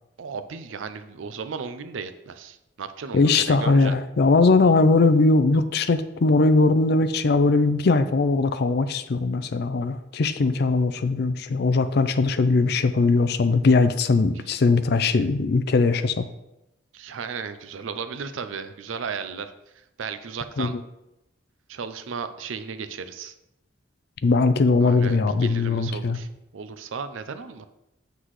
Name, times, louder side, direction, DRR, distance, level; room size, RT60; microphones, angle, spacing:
voice 1, 0.2-3.9 16.9-19.5 20.0-20.7 21.7-23.3 24.8-26.3 26.5-27.7, right 5 dB, 75° right, 11 dB, 0.5 m, -35 dB
voice 2, 3.1-16.3 20.6-20.8 24.2-26.2, left 3 dB, 55° left, 11 dB, 0.4 m, -20 dB
8.1 x 5.8 x 3.1 m, 0.90 s
head